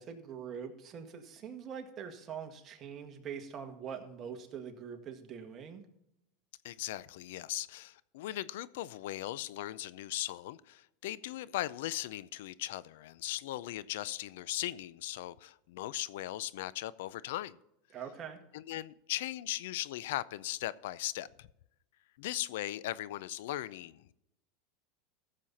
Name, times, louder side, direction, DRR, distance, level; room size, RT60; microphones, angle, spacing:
voice 1, 0.0-5.8 17.9-18.4, right 7 dB, 30° right, 1.8 m, -43 dB
voice 2, 6.6-17.6 18.5-21.5 22.2-24.1, left 14 dB, 75° left, 0.5 m, -38 dB
15.0 x 7.5 x 4.1 m
supercardioid pair, 130°, 0 cm